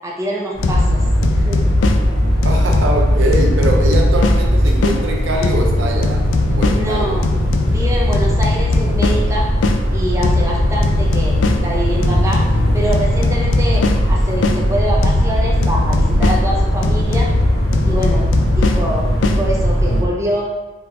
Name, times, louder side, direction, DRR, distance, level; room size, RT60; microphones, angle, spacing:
voice 1, 0.0-1.0 1.3-1.7 6.7-7.2 7.6-9.5 9.9-12.4 12.7-17.3 17.8-20.5, equal, 15° right, -3 dB, 0.6 m, -24 dB
sound 1, 0.5-20.0, equal, 55° left, 1.2 m, -18 dB
sound 2, 0.6-5.0 5.4-9.8 10.2-14.6 15.0-19.4, left 3 dB, 75° left, 0.3 m, -21 dB
voice 2, 2.4-7.2, right 2 dB, 80° right, 1 dB, 0.6 m, -22 dB
3.9 x 3.5 x 2.8 m, 1.2 s
head